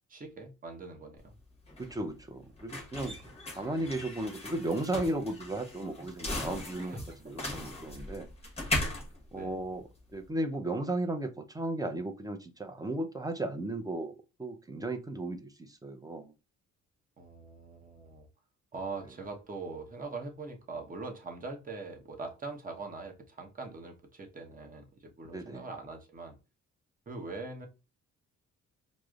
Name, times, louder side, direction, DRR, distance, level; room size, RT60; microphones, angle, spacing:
voice 1, 0.1-1.3 6.8-7.3 9.3-9.6 17.2-18.3 18.7-26.4 27.1-27.7, right 3 dB, 30° right, 0.9 m, -42 dB
sound 1, 1.2-10.2, left 2 dB, 20° left, 1.0 m, -38 dB
voice 2, 1.8-7.0 7.2-8.3 9.3-9.8 10.1-16.3 25.3-25.6, right 1 dB, 10° right, 0.5 m, -35 dB
4.8 x 2.1 x 2.3 m
cardioid pair, 90°, 30 cm